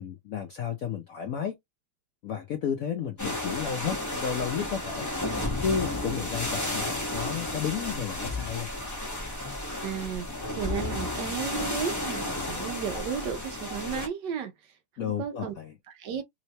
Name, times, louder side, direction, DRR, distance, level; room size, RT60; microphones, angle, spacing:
voice 1, 0.0-1.6 2.2-5.1 5.6-8.7 15.0-15.7, left 8 dB, 75° left, 0.7 m, -32 dB
sound 1, 3.2-14.1, left 1 dB, 15° left, 0.7 m, -32 dB
voice 2, 9.8-14.8 15.0-15.5 15.9-16.2, right 8 dB, 65° right, 1.2 m, -34 dB
3.6 x 3.2 x 2.8 m
omnidirectional pair, 2.2 m